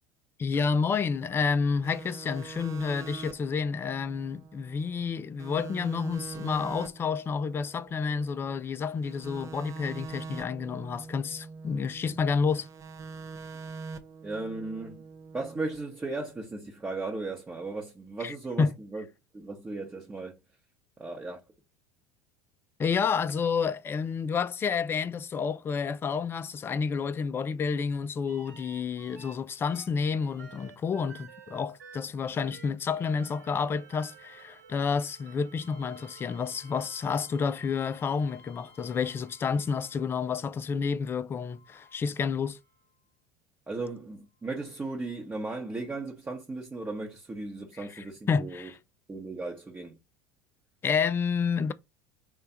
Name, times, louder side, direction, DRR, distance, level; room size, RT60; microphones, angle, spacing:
voice 1, 0.4-12.7 18.2-18.3 18.6-18.7 22.8-42.6 48.0-48.7 50.8-51.7, left 5 dB, 25° left, 0.3 m, -30 dB
sound 1, 1.8-5.1 5.4-8.6 9.0-12.2 12.5-15.8, right 4 dB, 35° right, 0.5 m, -43 dB
voice 2, 14.2-15.0 15.3-19.1 19.3-20.3 21.0-21.4 43.7-48.7 49.1-50.0, right 3 dB, 15° right, 0.8 m, -36 dB
sound 2, 28.3-29.3 29.7-40.5 41.3-42.9 44.6-44.7, right 4 dB, 85° right, 0.8 m, -53 dB
3.3 x 2.3 x 4.0 m
hypercardioid pair, 75°, 10 cm